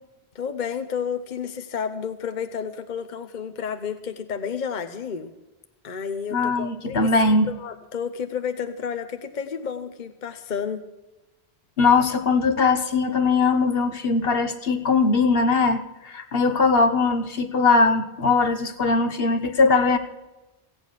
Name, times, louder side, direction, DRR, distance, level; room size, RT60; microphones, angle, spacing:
voice 1, 0.3-5.3 5.8-10.8, left 7 dB, 50° left, 8 dB, 1.0 m, -31 dB
voice 2, 6.3-7.5 11.8-20.0, left 4 dB, 65° left, 7 dB, 1.3 m, -20 dB
16.0 x 9.0 x 6.5 m, 1.0 s
omnidirectional pair, 1.1 m